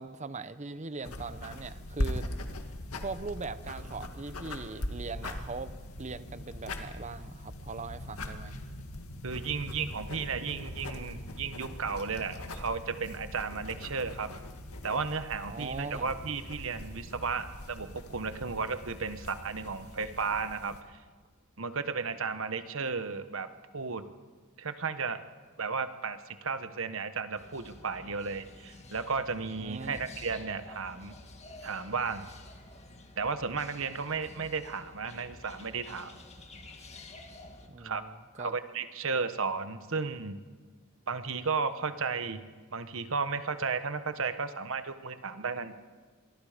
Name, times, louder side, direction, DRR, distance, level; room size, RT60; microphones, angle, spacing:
voice 1, 0.0-2.3 3.0-5.7 6.0-8.5 15.5-16.1 29.6-30.0 37.7-38.6, right 3 dB, 35° right, 13 dB, 0.8 m, -40 dB
sound 1, 1.0-20.8, left 1 dB, 80° left, 2.1 m, -41 dB
voice 2, 9.2-14.3 14.8-21.0 21.6-24.0 24.6-25.2 25.6-31.2 31.6-32.3 33.2-36.2 37.8-38.0 38.4-40.4 41.1-42.4 42.7-45.7, right 5 dB, 65° right, 10 dB, 1.2 m, -34 dB
sound 2, 27.3-37.7, left 2 dB, 30° left, 2.0 m, -50 dB
26.5 x 23.0 x 5.1 m, 1.5 s
head